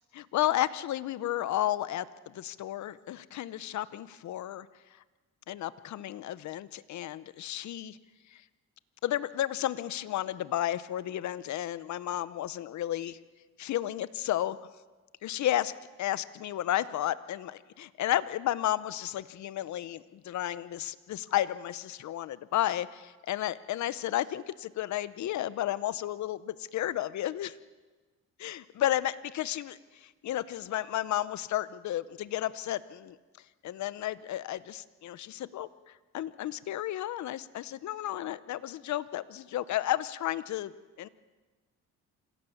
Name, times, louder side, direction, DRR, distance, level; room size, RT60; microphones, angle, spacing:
voice 1, 0.1-2.1 2.3-4.7 5.5-8.0 8.3-8.4 9.0-13.2 13.6-14.6 15.2-15.7 16.0-27.6 28.4-33.2 33.6-40.7 41.0-41.1, left 13 dB, 70° left, 16 dB, 0.8 m, -32 dB
26.5 x 16.5 x 7.2 m, 1.3 s
cardioid pair, 90°, 30 cm